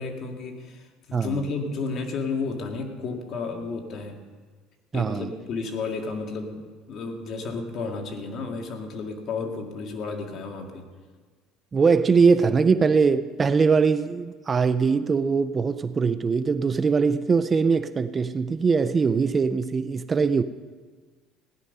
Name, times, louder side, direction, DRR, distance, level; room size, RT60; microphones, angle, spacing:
voice 1, 0.0-4.2 4.9-10.9, left 4 dB, 50° left, 1.9 m, -32 dB
voice 2, 4.9-5.3 11.7-20.4, right 5 dB, 25° right, 0.4 m, -21 dB
16.5 x 10.5 x 5.4 m
cardioid pair, 130°, 0 cm